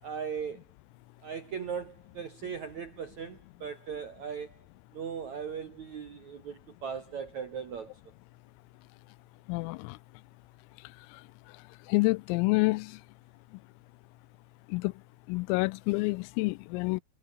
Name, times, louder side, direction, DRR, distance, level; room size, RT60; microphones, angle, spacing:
voice 1, 0.0-0.6 1.2-4.6 4.9-8.0, right 7 dB, 65° right, 1.8 m, -38 dB
voice 2, 9.5-10.0 11.9-13.0 14.7-14.9 15.3-17.0, left 25 dB, 85° left, 3.2 m, -28 dB
omnidirectional pair, 5.9 m